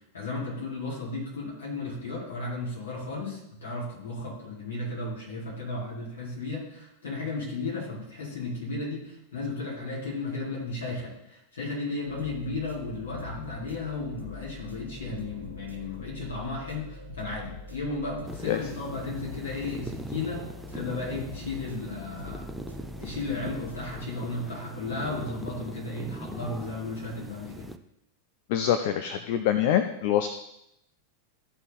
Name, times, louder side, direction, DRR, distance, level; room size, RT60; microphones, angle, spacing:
voice 1, 0.1-20.4 20.7-22.5 23.0-27.7, left 3 dB, 65° left, -6 dB, 4.2 m, -34 dB
sound 1, 12.0-24.0, left 3 dB, 90° right, 1.3 m, -44 dB
sound 2, 18.3-27.8, right 2 dB, 5° right, 0.5 m, -42 dB
voice 2, 28.5-30.3, left 10 dB, 50° left, 9 dB, 0.5 m, -25 dB
14.0 x 4.8 x 4.2 m, 0.83 s
figure-of-eight pair, 90°, 0 cm